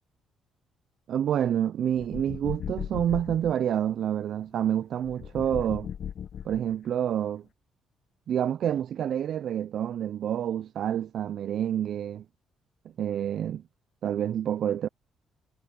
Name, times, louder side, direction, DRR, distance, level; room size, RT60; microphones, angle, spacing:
voice 1, 1.1-5.9 6.4-7.4 8.3-12.2 13.0-13.6 14.0-14.9, right 10 dB, 65° right, 0.4 m, -28 dB
sound 1, 1.9-3.5 5.0-6.9, left 8 dB, 60° left, 1.1 m, -37 dB
cardioid pair, 90°, 0 cm